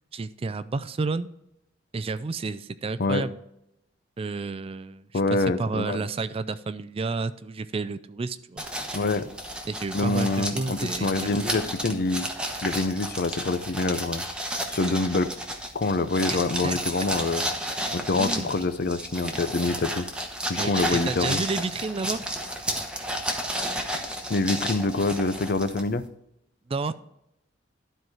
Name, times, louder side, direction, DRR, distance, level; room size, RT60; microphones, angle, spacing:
voice 1, 0.1-1.3 1.9-3.4 4.2-8.7 9.6-11.3 16.3-16.4 16.6-16.8 18.2-18.5 20.6-22.2 26.7-26.9, right 3 dB, 30° right, 14 dB, 0.4 m, -31 dB
voice 2, 5.1-6.0 8.9-9.3 9.9-12.3 12.6-14.2 14.7-15.3 15.7-17.4 17.9-20.1 20.5-21.4 24.3-26.0, left 3 dB, 55° left, 12 dB, 0.6 m, -26 dB
sound 1, 8.6-26.1, equal, 5° right, 1.0 m, -32 dB
12.0 x 4.6 x 4.8 m, 0.81 s
head